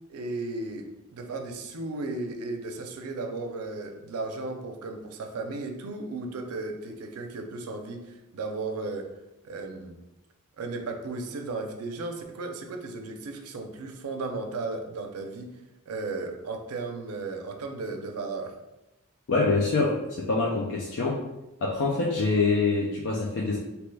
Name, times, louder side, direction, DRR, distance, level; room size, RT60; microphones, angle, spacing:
voice 1, 0.1-9.1 9.4-10.0 10.6-15.6 15.9-18.6, right 3 dB, 75° right, 4 dB, 0.5 m, -35 dB
voice 2, 19.3-21.2 21.6-23.6, left 3 dB, 55° left, -3 dB, 0.4 m, -25 dB
2.8 x 2.2 x 3.2 m, 0.97 s
head